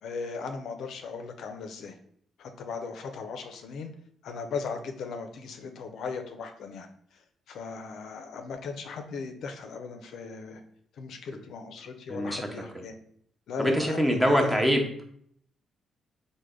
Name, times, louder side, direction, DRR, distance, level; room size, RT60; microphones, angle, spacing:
voice 1, 0.0-2.0 2.4-3.9 4.2-10.6 10.9-13.0 13.5-14.6, left 5 dB, 75° left, 6 dB, 0.4 m, -38 dB
voice 2, 12.1-12.5 12.7-12.8 13.6-15.0, equal, 5° right, 3 dB, 0.6 m, -24 dB
3.2 x 2.0 x 3.6 m, 0.64 s
cardioid pair, 105°, 0 cm